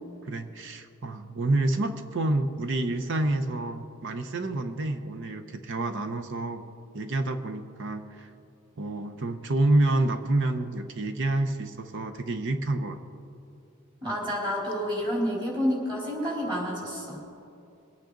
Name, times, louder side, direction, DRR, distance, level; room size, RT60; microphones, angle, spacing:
voice 1, 0.2-6.6 6.9-8.3 8.8-13.0, right 2 dB, 60° right, 8 dB, 0.7 m, -28 dB
voice 2, 14.0-17.2, equal, 20° right, -4 dB, 3.8 m, -29 dB
22.5 x 8.9 x 3.9 m, 2.6 s
head